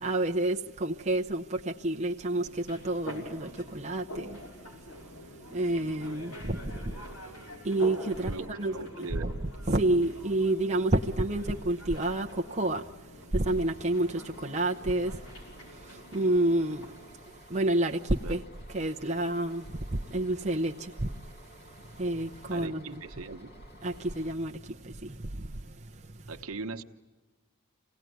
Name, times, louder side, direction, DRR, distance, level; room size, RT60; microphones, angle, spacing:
voice 1, 0.0-4.4 5.5-7.0 7.6-9.1 9.4-12.9 13.3-15.2 15.7-16.9 17.5-18.4 18.7-19.7 19.9-21.1 22.0-23.0 23.8-25.6, right 1 dB, 30° right, 0.7 m, -29 dB
sound 1, 2.3-17.1, equal, 80° left, 5.9 m, -46 dB
voice 2, 8.2-9.3 18.2-18.4 22.5-23.5 26.3-26.8, right 3 dB, 70° right, 1.1 m, -39 dB
Bus, 13.4-24.3, equal, 45° left, 2.3 m, -54 dB
26.0 x 18.0 x 9.4 m
head